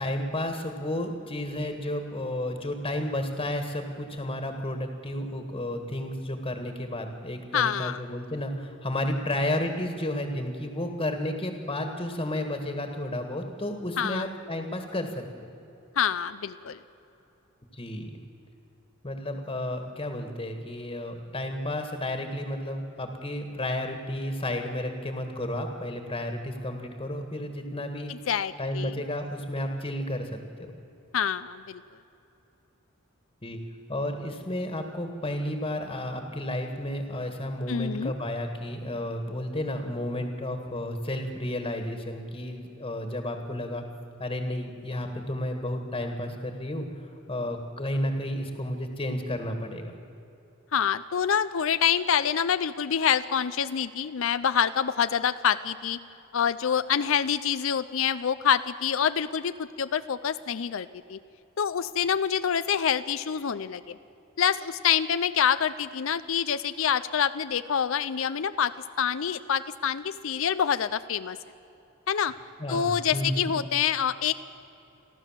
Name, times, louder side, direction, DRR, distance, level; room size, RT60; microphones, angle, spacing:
voice 1, 0.0-15.5 17.7-18.2 19.0-28.1 28.6-30.7 33.4-33.6 33.9-43.8 44.2-46.9 47.3-49.9 72.6-73.5, left 1 dB, 25° left, 5 dB, 1.7 m, -32 dB
voice 2, 7.5-8.0 14.0-14.2 16.0-16.8 28.1-29.0 31.1-31.8 37.7-38.1 50.7-56.0 56.3-61.2 61.6-64.0 64.4-71.4 72.1-72.3 72.7-74.3, left 8 dB, 70° left, 13 dB, 0.5 m, -26 dB
29.5 x 12.0 x 7.4 m, 3.0 s
head